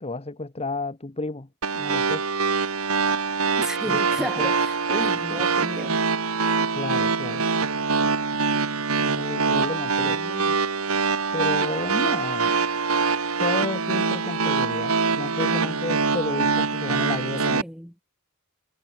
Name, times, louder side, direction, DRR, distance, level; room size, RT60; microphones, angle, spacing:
voice 1, 0.0-1.5 1.7-2.2 3.9-4.5 5.3-5.4 6.7-7.4 9.0-10.2 11.3-12.7 13.4-17.6, left 2 dB, 30° left, 1.1 m, -32 dB
sound 1, 1.6-17.6, right 4 dB, 80° right, 1.9 m, -24 dB
voice 2, 3.6-6.0 10.0-10.6 17.5-17.9, equal, 5° right, 2.6 m, -33 dB
head